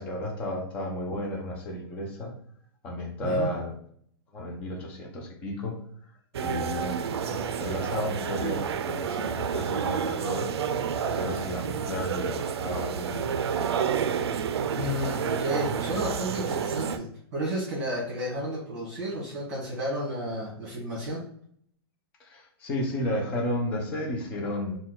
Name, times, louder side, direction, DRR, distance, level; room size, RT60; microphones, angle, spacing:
voice 1, 0.0-2.3 2.8-3.7 4.3-5.8 6.4-10.5 11.2-13.4 22.2-24.8, left 1 dB, 10° left, 0 dB, 0.3 m, -33 dB
sound 1, 6.3-17.0, right 7 dB, 80° right, 0.4 m, -30 dB
voice 2, 14.7-21.2, equal, 35° right, -6 dB, 1.4 m, -32 dB
4.2 x 2.2 x 3.8 m, 0.64 s
hypercardioid pair, 180°, 13 cm